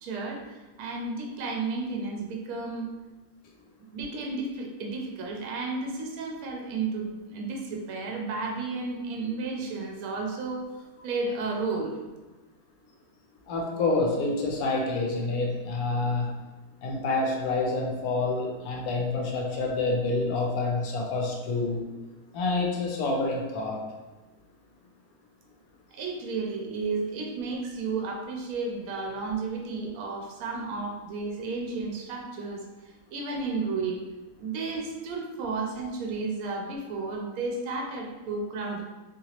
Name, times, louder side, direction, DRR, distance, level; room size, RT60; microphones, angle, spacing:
voice 1, 0.0-2.9 3.9-10.7 11.0-12.0 25.9-34.0 34.4-38.8, right 3 dB, 80° right, 0 dB, 1.0 m, -32 dB
voice 2, 13.5-16.3 16.8-21.9 22.3-23.8, left 3 dB, 85° left, 0 dB, 1.1 m, -27 dB
2.9 x 2.9 x 2.8 m, 1.1 s
omnidirectional pair, 1.5 m